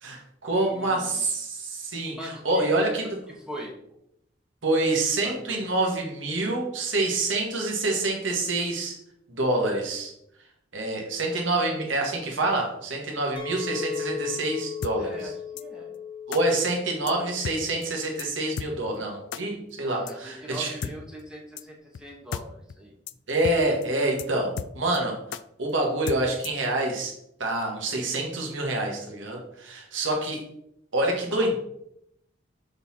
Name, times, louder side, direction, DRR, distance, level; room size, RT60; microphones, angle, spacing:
voice 1, 0.0-3.2 4.6-8.9 9.3-10.1 10.7-15.3 16.3-20.7 23.3-25.2 25.6-27.1 27.4-30.4 30.9-31.6, right 2 dB, 80° right, 0 dB, 1.7 m, -27 dB
voice 2, 0.6-1.2 2.2-2.8 3.5-3.7 5.2-5.6 11.3-11.4 15.0-15.9 16.3-16.6 19.8-22.9 31.3-31.5, equal, 5° right, -2 dB, 1.0 m, -41 dB
Chink clink, 13.4-18.5, left 7 dB, 25° left, 0.9 m, -37 dB
sound 1, 14.8-14.9 15.6-15.7 16.3-16.4 17.1-17.2 17.4-17.6 17.8-17.9 18.2-18.3 18.6-18.7 19.3-19.4 20.1-20.2 20.8-20.9 21.6-21.7 21.9-22.0 22.3-22.4 22.7-22.8 23.1-23.2 23.4-23.6 23.8-23.9 24.2-24.3 24.6-25.0 25.3-25.4 26.1-26.6, left 7 dB, 70° left, 0.3 m, -34 dB
6.9 x 4.0 x 4.3 m, 0.76 s
head